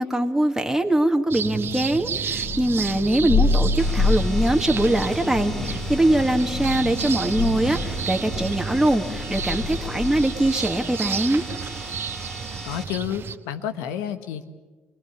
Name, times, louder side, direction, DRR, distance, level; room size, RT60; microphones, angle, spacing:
voice 1, 0.0-11.4, right 1 dB, 10° right, 4 dB, 2.0 m, -22 dB
sound 1, 1.3-13.4, right 7 dB, 50° right, 1.3 m, -32 dB
Thunder, 2.3-10.7, left 3 dB, 55° left, 5.4 m, -27 dB
sound 2, 3.8-12.8, equal, 10° left, 2.5 m, -39 dB
voice 2, 12.6-14.5, left 10 dB, 75° left, 9 dB, 1.5 m, -30 dB
26.5 x 20.0 x 8.5 m, 1.3 s
hypercardioid pair, 55°, 5 cm